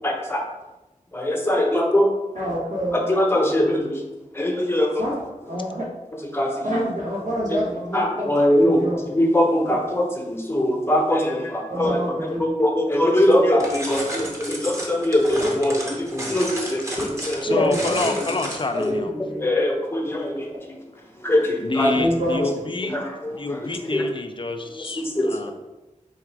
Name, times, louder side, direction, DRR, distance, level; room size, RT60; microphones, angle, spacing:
voice 1, 0.0-0.5 1.1-2.1 2.9-4.0 4.3-5.1 6.3-6.6 7.5-7.6 7.9-17.5 18.8-19.0 19.4-20.8 21.2-21.9 22.8-24.1 24.8-25.5, left 1 dB, 15° left, 0 dB, 0.8 m, -22 dB
voice 2, 2.3-3.0 5.0-5.2 5.5-5.8 6.6-8.3 8.6-9.0 9.7-9.8 11.7-12.4 17.5-18.4 18.7-19.4 20.0-20.1 21.9-22.4, equal, 70° right, -6 dB, 1.3 m, -26 dB
Searching for keys, 13.6-18.9, equal, 20° right, 0.9 m, -32 dB
voice 3, 17.4-19.1 21.6-23.0 23.4-25.5, left 3 dB, 40° left, 7 dB, 0.4 m, -27 dB
4.0 x 2.4 x 4.6 m, 1.0 s
wide cardioid pair, 75°, 14 cm